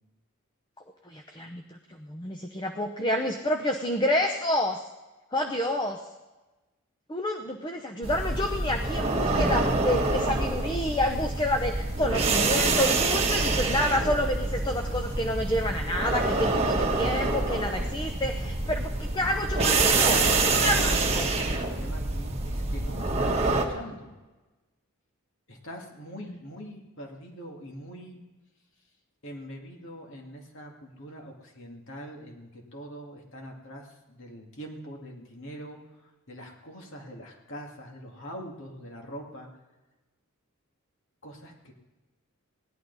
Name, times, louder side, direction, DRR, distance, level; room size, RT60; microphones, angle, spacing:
voice 1, 1.1-4.9 5.3-6.0 7.1-21.3, left 1 dB, 20° left, 4 dB, 0.7 m, -29 dB
sound 1, 8.0-23.7, right 3 dB, 30° right, 1.3 m, -26 dB
voice 2, 19.8-20.7 21.4-24.1 25.5-28.2 29.2-39.5 41.2-41.7, equal, 60° left, 1 dB, 2.3 m, -43 dB
17.5 x 11.0 x 4.1 m, 1.1 s
head